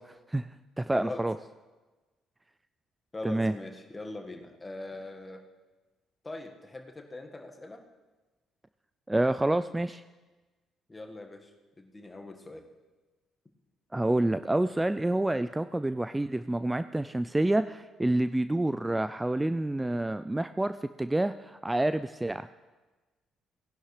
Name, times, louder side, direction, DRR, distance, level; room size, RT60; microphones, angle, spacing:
voice 1, 0.1-0.5 0.8-1.3 3.2-3.5 9.1-10.0 13.9-22.5, right 1 dB, 15° right, 12 dB, 0.3 m, -28 dB
voice 2, 0.9-1.2 3.1-5.4 6.2-7.8 10.9-11.5 11.8-12.6, left 2 dB, 25° left, 4 dB, 1.6 m, -41 dB
17.5 x 11.0 x 3.3 m, 1.2 s
hypercardioid pair, 45°, 0 cm